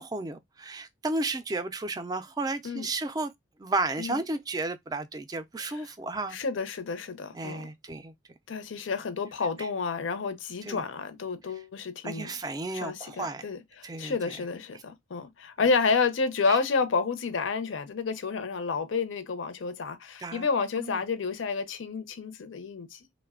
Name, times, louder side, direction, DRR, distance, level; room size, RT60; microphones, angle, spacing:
voice 1, 0.0-3.3 3.6-6.4 7.3-8.1 9.6-9.7 10.6-10.9 12.0-13.5 13.8-14.4 14.7-14.8 16.5-16.6 20.2-20.5 20.8-21.0, right 2 dB, 20° right, 0.3 m, -33 dB
voice 2, 6.3-7.6 8.5-12.3 12.7-23.0, left 4 dB, 85° left, 0.5 m, -30 dB
3.1 x 2.1 x 2.3 m
head